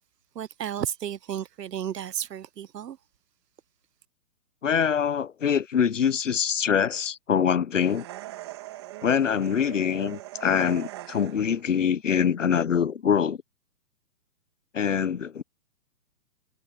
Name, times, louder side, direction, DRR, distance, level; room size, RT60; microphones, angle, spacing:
voice 1, 0.3-3.0, right 10 dB, 75° right, 0.8 m, -33 dB
voice 2, 4.6-8.0 9.0-13.4 14.7-15.4, left 7 dB, 50° left, 0.9 m, -24 dB
sound 1, 7.8-11.6, right 16 dB, 15° right, 1.9 m, -41 dB
hypercardioid pair, 175°, 48 cm